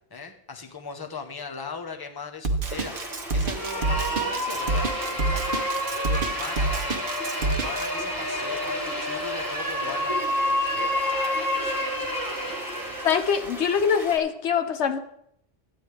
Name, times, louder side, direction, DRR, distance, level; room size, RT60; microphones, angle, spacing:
voice 1, 0.1-7.0 7.4-10.2 10.7-12.0, left 4 dB, 20° left, 4 dB, 0.9 m, -39 dB
Drum kit, 2.4-7.9, right 3 dB, 50° right, 1.0 m, -27 dB
sound 1, 2.6-14.2, equal, ahead, 2.0 m, -39 dB
sound 2, 3.5-13.3, equal, 20° right, 1.6 m, -29 dB
voice 2, 13.0-15.0, left 7 dB, 90° left, 8 dB, 1.2 m, -23 dB
13.5 x 9.7 x 3.4 m, 0.72 s
omnidirectional pair, 1.1 m